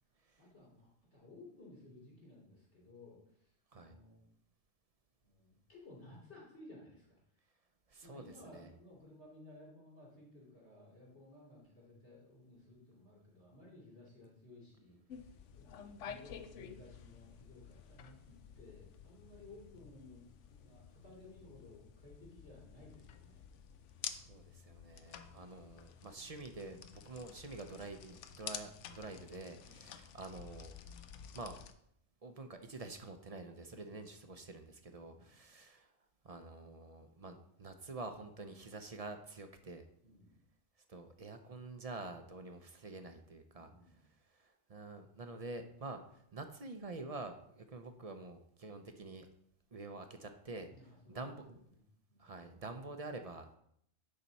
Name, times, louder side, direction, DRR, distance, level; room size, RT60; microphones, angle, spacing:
voice 1, 0.4-4.2 5.2-7.2 8.0-15.8 16.0-23.4 29.6-29.9 33.7-33.9 35.0-35.4 40.0-40.4 43.5-44.1 50.7-51.8 52.1-52.3, left 2 dB, 70° left, -4 dB, 3.6 m, -57 dB
voice 2, 7.9-8.7 24.1-30.7 31.3-31.6 32.2-35.9 36.2-39.9 40.9-43.7 44.3-49.3 49.7-50.7 51.1-51.6 52.2-53.5, right 3 dB, 40° right, 7 dB, 0.6 m, -47 dB
sound 1, 15.1-31.7, left 8 dB, 85° left, 1.0 m, -51 dB
10.5 x 4.4 x 4.1 m, 0.71 s
omnidirectional pair, 1.2 m